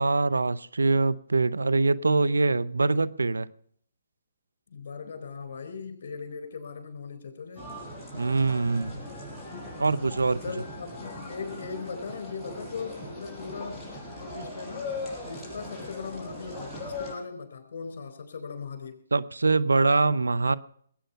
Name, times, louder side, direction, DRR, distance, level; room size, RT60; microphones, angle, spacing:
voice 1, 0.0-3.5 8.1-9.0 9.8-10.4 19.1-20.6, right 3 dB, 90° right, 16 dB, 0.7 m, -24 dB
voice 2, 4.7-7.7 9.5-9.7 10.4-14.9 15.2-19.0, left 5 dB, 60° left, 8 dB, 4.2 m, -39 dB
sound 1, 7.6-17.1, left 2 dB, 5° left, 5.8 m, -39 dB
20.0 x 9.1 x 5.7 m, 0.62 s
hypercardioid pair, 140°, 0 cm